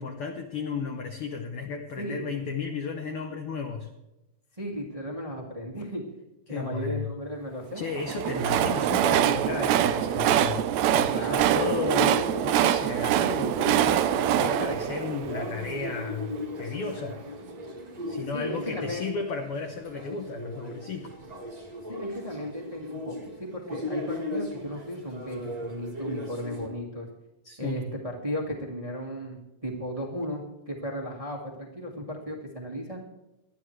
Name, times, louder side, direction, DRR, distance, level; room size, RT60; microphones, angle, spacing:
voice 1, 0.0-3.9 6.5-7.1 7.7-10.7 10.9-17.2 18.1-21.1 27.4-27.9, left 5 dB, 70° left, 4 dB, 1.3 m, -34 dB
voice 2, 4.6-6.0 6.5-7.9 8.3-8.5 11.1-11.8 18.3-19.2 21.9-27.1 27.6-33.1, equal, 15° right, -1 dB, 1.3 m, -35 dB
Train, 7.9-16.1, right 10 dB, 75° right, 1.7 m, -24 dB
sound 1, 11.1-26.7, left 1 dB, 35° right, 0.6 m, -37 dB
20.5 x 12.0 x 3.3 m, 0.98 s
omnidirectional pair, 3.8 m